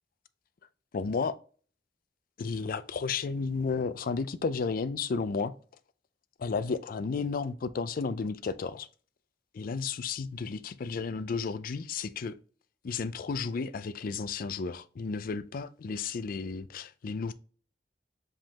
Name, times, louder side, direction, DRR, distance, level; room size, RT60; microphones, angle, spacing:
voice 1, 0.9-1.4 2.4-5.5 6.4-8.9 9.5-12.4 12.8-17.3, left 4 dB, 50° left, 0.4 m, -33 dB
5.1 x 3.7 x 2.8 m
head